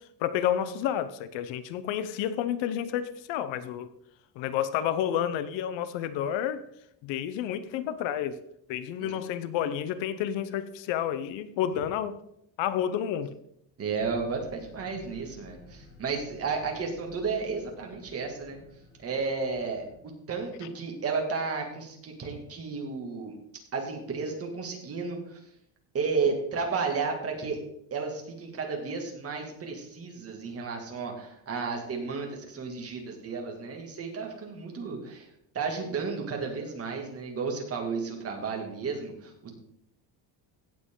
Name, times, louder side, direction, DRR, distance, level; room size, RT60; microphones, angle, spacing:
voice 1, 0.2-3.9 4.4-6.6 7.0-8.4 8.7-12.2 12.6-13.4, left 10 dB, 65° left, 14 dB, 0.9 m, -30 dB
voice 2, 13.8-18.6 19.0-19.8 20.3-23.3 23.7-25.4 25.9-27.6 27.9-35.3 35.5-39.3, right 4 dB, 30° right, 2 dB, 2.3 m, -32 dB
sound 1, 14.0-20.0, left 2 dB, 30° left, 2.7 m, -53 dB
16.5 x 7.6 x 3.8 m, 0.75 s
cardioid pair, 170°, 47 cm